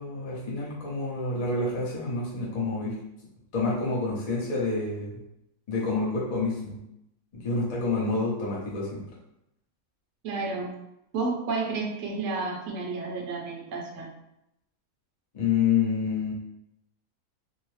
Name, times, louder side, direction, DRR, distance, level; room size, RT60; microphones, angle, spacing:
voice 1, 0.0-3.0 3.5-5.2 5.7-6.8 7.3-9.0 15.3-16.3, left 4 dB, 35° left, -5 dB, 0.7 m, -28 dB
voice 2, 10.2-10.7 11.1-14.1, right 3 dB, 65° right, -1 dB, 0.8 m, -31 dB
2.7 x 2.0 x 3.1 m, 0.84 s
omnidirectional pair, 1.5 m